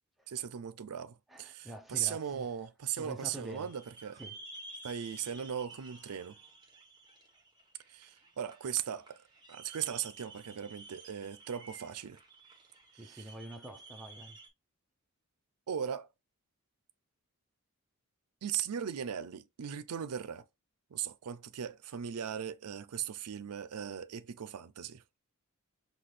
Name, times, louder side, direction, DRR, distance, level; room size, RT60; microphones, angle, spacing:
voice 1, 0.3-4.2 4.8-6.4 7.9-9.2 9.5-12.2 12.9-13.3 15.7-16.1 18.4-20.5 20.9-25.0, right 8 dB, 90° right, 0.5 m, -38 dB
voice 2, 1.3-2.5 2.9-3.7 4.2-4.4 13.0-14.4, right 1 dB, ahead, 0.6 m, -46 dB
sound 1, 3.2-14.5, right 2 dB, 20° right, 1.2 m, -53 dB
5.8 x 2.4 x 3.2 m
head